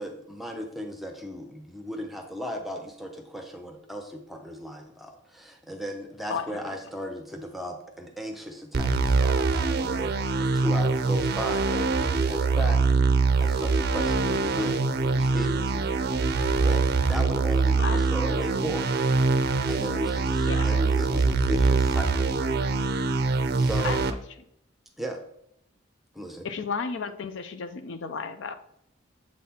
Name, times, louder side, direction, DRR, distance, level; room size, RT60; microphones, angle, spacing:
voice 1, 0.0-12.8 13.4-15.9 16.5-18.9 19.7-22.3 23.6-24.0 25.0-25.2 26.1-26.5, equal, ahead, 3 dB, 0.7 m, -36 dB
sound 1, 8.7-24.1, right 4 dB, 50° right, 0.5 m, -24 dB
voice 2, 20.5-20.8 23.8-24.0 26.4-28.5, left 5 dB, 65° left, 10 dB, 0.5 m, -33 dB
7.4 x 4.1 x 4.2 m, 0.75 s
head